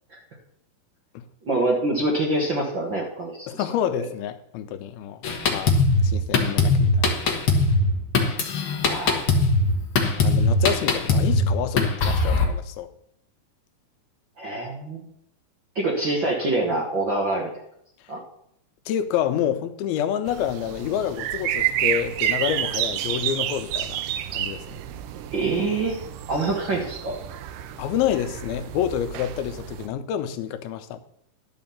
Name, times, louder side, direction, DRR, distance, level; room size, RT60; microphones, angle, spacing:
voice 1, 1.4-3.5 3.9-4.1 8.8-9.2 14.4-15.1 15.7-17.5 18.1-18.2 25.3-25.9 26.3-27.2, right 2 dB, 50° right, -1 dB, 1.4 m, -25 dB
voice 2, 3.5-5.2 5.5-7.1 10.2-12.9 18.9-24.0 24.3-24.8 27.8-31.0, left 10 dB, 90° left, 10 dB, 2.6 m, -28 dB
Drum kit, 5.2-12.5, left 2 dB, 65° left, 1.2 m, -21 dB
sound 1, 20.3-29.9, right 11 dB, 80° right, 2.0 m, -30 dB
11.5 x 5.2 x 7.1 m, 0.72 s
omnidirectional pair, 4.2 m